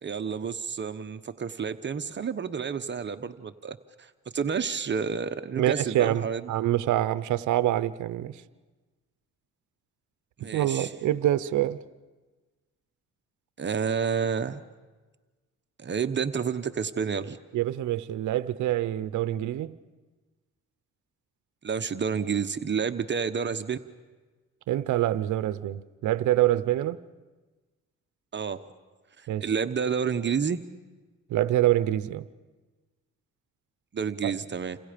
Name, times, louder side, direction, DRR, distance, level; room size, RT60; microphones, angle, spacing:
voice 1, 0.0-6.4 10.4-10.9 13.6-14.6 15.8-17.4 21.6-23.8 28.3-28.6 29.2-30.6 33.9-34.8, right 6 dB, 40° right, 1.0 m, -30 dB
voice 2, 5.6-8.4 10.5-11.8 17.5-19.7 24.7-27.0 29.3-29.5 31.3-32.3 34.2-34.3, right 13 dB, 75° right, 0.8 m, -26 dB
29.5 x 27.0 x 5.2 m
cardioid pair, 90°, 30 cm